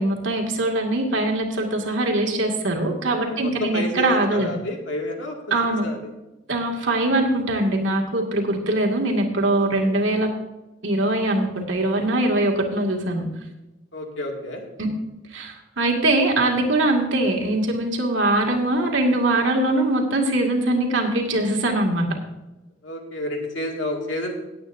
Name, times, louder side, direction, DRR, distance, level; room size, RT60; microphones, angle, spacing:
voice 1, 0.0-4.5 5.5-5.9 6.5-10.3 10.8-13.3 14.8-14.9 15.3-22.1, right 1 dB, 75° right, 0 dB, 2.2 m, -22 dB
voice 2, 3.4-5.4 5.8-6.1 9.6-10.0 13.9-14.7 22.8-24.4, left 1 dB, 75° left, 1 dB, 2.3 m, -30 dB
18.0 x 8.8 x 2.7 m, 1.0 s
head